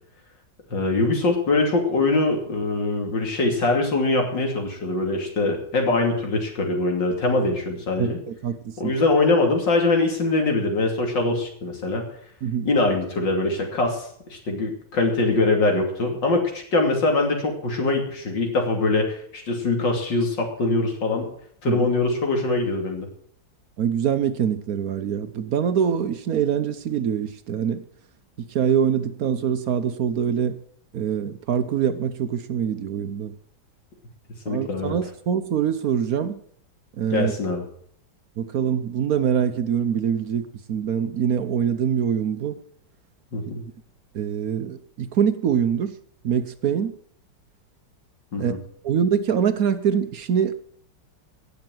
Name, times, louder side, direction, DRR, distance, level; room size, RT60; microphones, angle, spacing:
voice 1, 0.7-8.2 8.8-12.0 12.6-21.3 21.6-23.1 34.4-34.9 37.1-37.6 43.3-43.6 48.3-48.6, left 2 dB, 80° left, 2 dB, 3.4 m, -23 dB
voice 2, 8.0-8.9 12.4-12.7 21.7-21.8 23.8-27.8 28.4-30.6 30.9-33.3 34.5-36.4 37.0-37.3 38.4-42.6 44.1-45.9 46.2-46.9 48.4-48.5 48.8-50.5, right 8 dB, 60° right, 10 dB, 1.1 m, -24 dB
17.5 x 6.8 x 7.7 m, 0.63 s
omnidirectional pair, 2.0 m